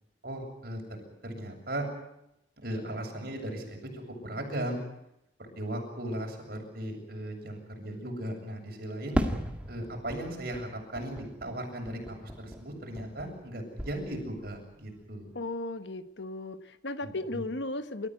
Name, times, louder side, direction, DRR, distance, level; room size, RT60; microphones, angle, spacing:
voice 1, 0.2-0.8 1.2-1.8 2.6-4.8 5.4-9.2 9.7-15.3 17.0-17.4, right 1 dB, 55° right, 1 dB, 7.6 m, -37 dB
Fireworks, 9.1-13.5 13.8-14.6, equal, 5° right, 2.0 m, -36 dB
voice 2, 15.3-18.1, left 2 dB, 75° left, 11 dB, 1.3 m, -35 dB
28.5 x 14.5 x 9.6 m, 0.83 s
head